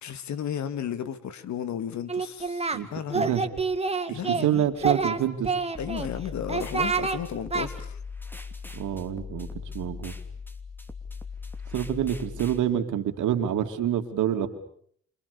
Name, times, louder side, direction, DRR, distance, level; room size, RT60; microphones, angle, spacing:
voice 1, 0.0-3.3 4.1-4.6 5.8-8.0, left 8 dB, 70° left, 12 dB, 2.3 m, -34 dB
Singing, 2.1-2.8 3.1-4.5 4.8-6.1 6.5-7.2 7.5-7.7, right 4 dB, 20° right, 2.2 m, -27 dB
voice 2, 3.1-3.4 4.1-5.5 8.7-9.5 9.7-10.2 11.7-14.5, right 10 dB, 80° right, 6 dB, 2.8 m, -27 dB
sound 1, 5.7-12.6, left 5 dB, 5° left, 2.8 m, -39 dB
28.0 x 27.5 x 7.0 m, 0.63 s
cardioid pair, 90°, 30 cm